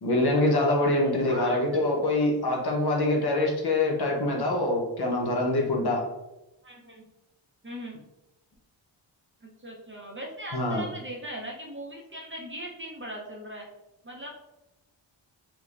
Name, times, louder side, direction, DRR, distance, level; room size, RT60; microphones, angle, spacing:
voice 1, 0.0-6.0 10.5-10.9, left 2 dB, 55° left, 0 dB, 0.8 m, -25 dB
voice 2, 0.8-1.6 6.6-7.0 7.6-8.0 9.4-13.7 14.0-14.3, equal, 25° right, -1 dB, 0.6 m, -39 dB
4.5 x 2.2 x 2.4 m, 0.95 s
wide cardioid pair, 95°, 47 cm